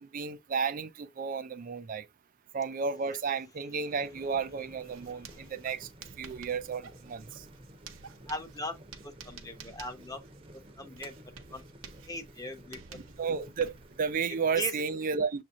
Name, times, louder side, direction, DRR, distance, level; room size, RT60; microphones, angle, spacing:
voice 1, 0.0-2.1 2.5-5.9 6.2-7.4 13.2-15.4, right 5 dB, 45° right, 0.4 m, -32 dB
sound 1, 3.9-14.7, right 1 dB, 30° right, 0.9 m, -53 dB
Writing, 4.8-14.1, right 5 dB, 90° right, 1.0 m, -52 dB
voice 2, 4.9-5.5 8.3-8.7 9.0-10.2 10.5-11.2 11.5-11.6 12.1-13.0 14.5-14.8, left 2 dB, 20° left, 1.0 m, -40 dB
7.2 x 2.8 x 2.5 m
head